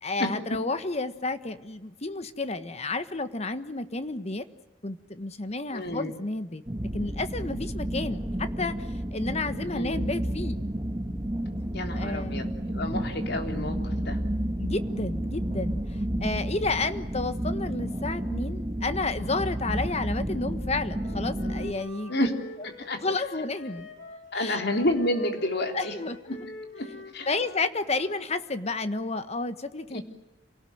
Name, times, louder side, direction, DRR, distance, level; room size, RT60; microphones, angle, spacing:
voice 1, 0.0-4.5 4.8-6.6 6.9-10.6 11.9-12.6 14.6-22.3 23.0-23.9 24.3-24.6 25.7-26.2 27.3-30.0, left 3 dB, 35° left, 11 dB, 1.4 m, -31 dB
voice 2, 5.7-6.1 9.7-10.0 11.7-14.2 22.1-22.3 22.6-23.0 24.3-25.9 27.1-27.3 29.9-30.0, left 1 dB, 55° left, 5 dB, 3.5 m, -29 dB
sound 1, 6.7-21.7, right 1 dB, 20° right, 1.3 m, -31 dB
Wind instrument woodwind instrument, 20.9-28.3, left 1 dB, 70° left, 3.5 m, -45 dB
27.5 x 18.5 x 9.3 m, 1.0 s
head